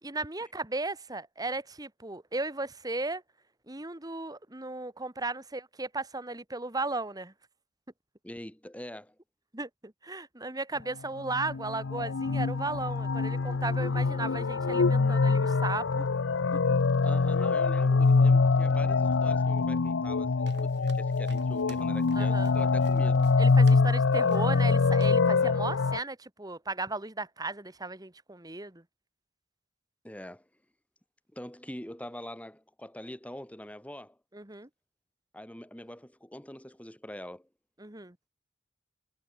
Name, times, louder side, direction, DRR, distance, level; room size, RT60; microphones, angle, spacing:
voice 1, 0.0-3.2 3.7-7.3 9.5-16.0 22.1-22.5 23.4-28.8 34.3-34.7 37.8-38.1, right 3 dB, 20° right, 1.8 m, -35 dB
voice 2, 8.2-9.2 17.0-23.2 25.3-25.6 30.0-30.5 31.3-34.2 35.3-37.5, left 1 dB, 5° left, 2.3 m, -44 dB
sound 1, 11.3-26.0, left 4 dB, 80° left, 0.6 m, -24 dB
sound 2, 20.5-24.0 24.3-24.7 25.0-25.3, right 4 dB, 60° right, 2.0 m, -52 dB
head